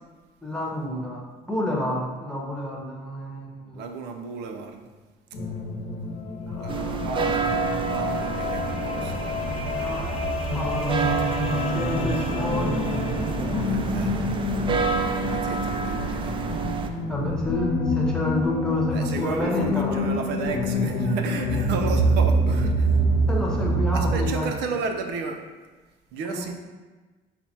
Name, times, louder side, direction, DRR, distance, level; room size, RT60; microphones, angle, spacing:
voice 1, 0.4-3.8 6.5-7.6 9.7-10.2 10.5-12.9 17.1-19.9 23.3-24.5 26.3-26.5, left 1 dB, 5° left, -3 dB, 0.9 m, -30 dB
voice 2, 3.7-4.9 6.6-7.5 7.8-9.3 13.6-14.2 15.2-16.4 16.7-16.9 18.9-23.0 23.9-25.4 26.1-26.5, right 5 dB, 85° right, 4 dB, 0.5 m, -33 dB
sound 1, 5.3-24.3, equal, 90° left, 0.8 m, -27 dB
sound 2, 6.1-13.9, left 6 dB, 40° left, 0.7 m, -34 dB
sound 3, 6.7-16.9, right 5 dB, 30° right, 0.4 m, -29 dB
5.7 x 2.0 x 4.1 m, 1.3 s
cardioid pair, 110°, 17 cm